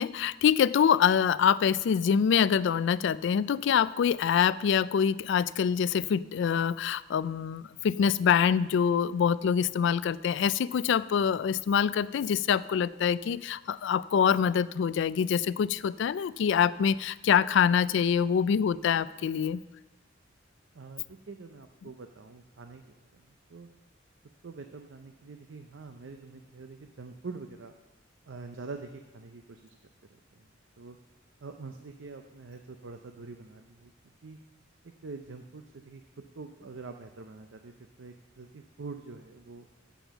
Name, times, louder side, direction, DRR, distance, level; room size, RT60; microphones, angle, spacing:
voice 1, 0.0-19.6, left 7 dB, 65° left, 18 dB, 0.3 m, -25 dB
voice 2, 20.7-23.7 24.4-27.7 28.3-29.8 30.1-30.5 30.8-31.0 31.4-33.9 34.2-34.4 35.0-36.0 36.4-39.7, right 4 dB, 65° right, 6 dB, 0.6 m, -45 dB
9.1 x 7.1 x 7.1 m, 1.1 s
head